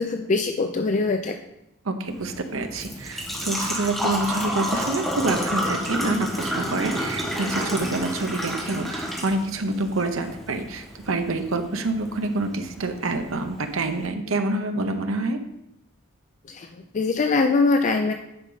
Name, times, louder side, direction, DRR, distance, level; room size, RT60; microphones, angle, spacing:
voice 1, 0.0-1.4 16.5-16.7 16.9-18.1, left 3 dB, 35° left, 6 dB, 0.4 m, -22 dB
voice 2, 1.8-15.4, right 2 dB, 75° right, 7 dB, 0.8 m, -27 dB
Engine / Trickle dribble / Fill (with liquid), 2.1-14.0, equal, ahead, 1.4 m, -31 dB
9.6 x 5.2 x 3.9 m, 0.83 s
head